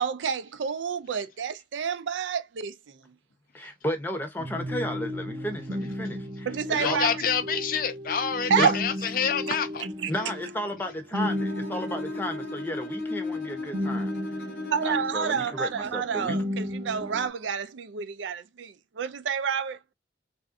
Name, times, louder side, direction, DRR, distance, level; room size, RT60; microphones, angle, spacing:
voice 1, 0.0-3.0 6.5-7.2 8.5-8.8 9.5-9.6 10.0-10.1 14.7-19.8, right 7 dB, 85° right, 0.4 m, -29 dB
voice 2, 3.5-7.0 8.6-8.7 10.1-14.1 14.8-16.4, left 1 dB, 10° left, 0.7 m, -33 dB
sound 1, 4.4-17.3, left 1 dB, 50° right, 0.9 m, -34 dB
voice 3, 6.7-9.8, left 7 dB, 50° left, 0.4 m, -27 dB
Bowed string instrument, 11.2-15.3, left 2 dB, 80° left, 0.9 m, -36 dB
3.4 x 2.5 x 2.4 m
head